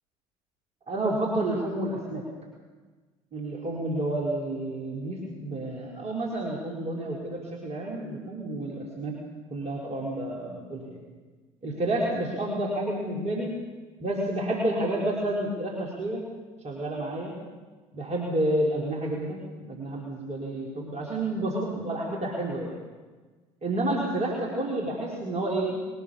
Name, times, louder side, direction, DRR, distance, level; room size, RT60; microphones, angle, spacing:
voice 1, 0.9-2.2 3.3-9.2 9.5-11.0 11.6-13.5 14.0-16.2 16.6-17.4 17.9-22.7 23.6-25.8, right 1 dB, 40° right, -2 dB, 4.5 m, -30 dB
22.0 x 19.0 x 7.2 m, 1.3 s
figure-of-eight pair, 60°, 17 cm